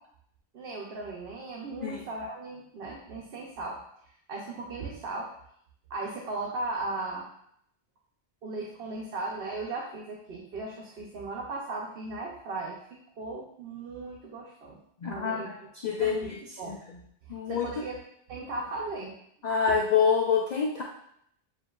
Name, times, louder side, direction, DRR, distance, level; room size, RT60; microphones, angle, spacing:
voice 1, 0.5-3.8 4.3-5.3 5.9-7.3 8.4-14.8 15.1-15.7 16.0-16.3 16.6-16.8 17.3-18.0 18.3-19.2, right 3 dB, 70° right, -2 dB, 0.9 m, -37 dB
voice 2, 15.0-15.5 15.8-16.4 16.7-16.8 17.3-17.7 19.4-20.8, left 6 dB, 55° left, -2 dB, 0.5 m, -26 dB
7.1 x 2.5 x 2.3 m, 0.70 s
omnidirectional pair, 1.1 m